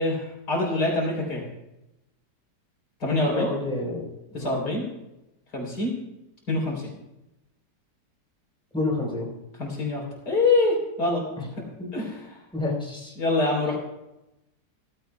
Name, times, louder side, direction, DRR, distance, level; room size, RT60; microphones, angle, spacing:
voice 1, 0.0-1.4 3.0-3.5 4.3-4.8 5.5-5.9 6.5-6.9 9.6-11.2 11.6-11.7 11.9-12.2 13.2-13.8, left 2 dB, 70° left, -2 dB, 4.3 m, -25 dB
voice 2, 3.3-4.1 4.3-4.6 8.7-9.3 11.4-11.5 11.8-11.9 12.5-13.1, left 2 dB, 5° left, -3 dB, 4.2 m, -29 dB
17.0 x 14.5 x 2.3 m, 0.92 s
omnidirectional pair, 1.9 m